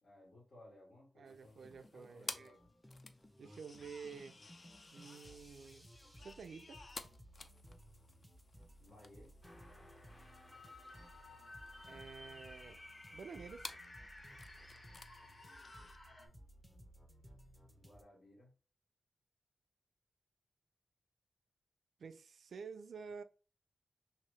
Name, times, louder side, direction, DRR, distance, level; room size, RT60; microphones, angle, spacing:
voice 1, 0.0-2.7 8.8-9.3 17.7-18.5, left 1 dB, 75° left, 1.7 m, -61 dB
voice 2, 1.2-2.6 3.4-4.4 4.9-5.9 6.2-6.8 11.9-12.8 13.1-13.7 22.0-23.2, right 5 dB, 80° right, 0.3 m, -50 dB
sound 1, 1.3-16.0, left 3 dB, 50° left, 0.4 m, -54 dB
sound 2, 1.4-18.0, equal, 5° left, 0.5 m, -60 dB
sound 3, 9.4-16.3, left 2 dB, 35° left, 0.9 m, -55 dB
2.9 x 2.8 x 3.1 m
cardioid pair, 65°, 0 cm